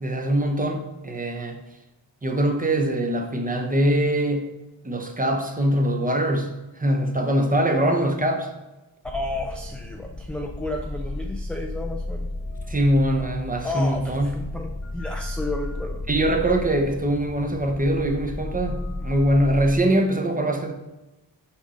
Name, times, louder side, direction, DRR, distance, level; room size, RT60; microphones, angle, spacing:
voice 1, 0.0-1.6 2.2-4.5 4.8-6.5 6.8-8.5 12.7-14.4 16.1-20.7, right 1 dB, 20° right, 4 dB, 0.7 m, -23 dB
sound 1, 9.0-19.8, left 2 dB, 35° left, 0.7 m, -33 dB
voice 2, 9.0-12.3 13.6-16.0, left 2 dB, 5° left, 1 dB, 0.4 m, -32 dB
7.2 x 5.2 x 3.7 m, 1.0 s
wide cardioid pair, 180°, 47 cm